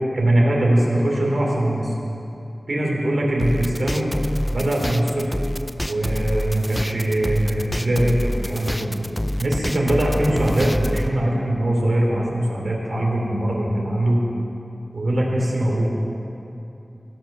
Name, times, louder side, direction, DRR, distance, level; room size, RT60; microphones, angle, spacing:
voice 1, 0.1-1.9 2.7-4.1 4.5-5.4 5.9-9.0 9.4-14.2 14.9-15.9, right 1 dB, 70° right, -2 dB, 2.9 m, -21 dB
sound 1, 3.4-11.1, equal, 10° left, 0.5 m, -27 dB
16.5 x 8.8 x 6.6 m, 2.8 s
wide cardioid pair, 85°, 0 cm